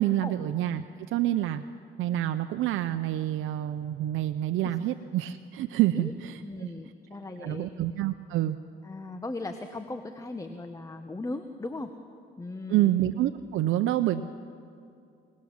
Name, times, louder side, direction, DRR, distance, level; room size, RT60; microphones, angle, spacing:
voice 1, 0.0-1.6 2.0-6.7 7.4-8.6 12.7-14.2, right 13 dB, 85° right, 9 dB, 0.7 m, -27 dB
voice 2, 6.4-7.7 8.8-11.9 12.4-12.9 14.1-14.2, left 2 dB, 15° left, 8 dB, 1.2 m, -38 dB
26.5 x 19.0 x 7.3 m, 2.5 s
cardioid pair, 90°, 20 cm